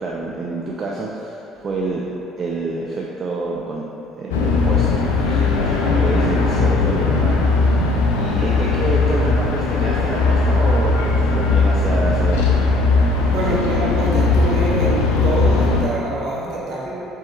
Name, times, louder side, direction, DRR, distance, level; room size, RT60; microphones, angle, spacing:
voice 1, 0.0-2.0 2.4-3.8 4.2-7.8 8.1-12.6 13.3-13.6, right 3 dB, 45° right, -3 dB, 0.4 m, -27 dB
sound 1, 4.3-15.8, left 3 dB, 85° left, 0.4 m, -18 dB
voice 2, 13.3-16.9, right 1 dB, 60° right, -5 dB, 1.0 m, -25 dB
4.3 x 3.4 x 3.1 m, 3.0 s
hypercardioid pair, 60°, 0 cm